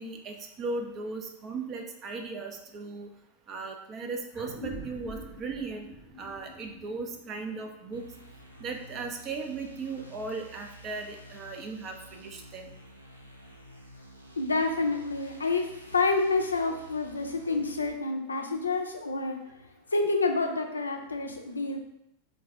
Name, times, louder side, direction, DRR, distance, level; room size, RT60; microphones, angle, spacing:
voice 1, 0.0-3.1 3.5-5.9 6.2-8.1 8.6-12.7, right 3 dB, 30° right, 3 dB, 0.5 m, -37 dB
sound 1, 4.3-9.2, equal, 5° right, 0.8 m, -45 dB
sound 2, 7.9-17.9, equal, 90° right, 0.5 m, -50 dB
voice 2, 14.4-21.8, left 3 dB, 75° left, 4 dB, 0.5 m, -28 dB
3.9 x 2.7 x 3.3 m, 0.79 s
figure-of-eight pair, 90°, 0 cm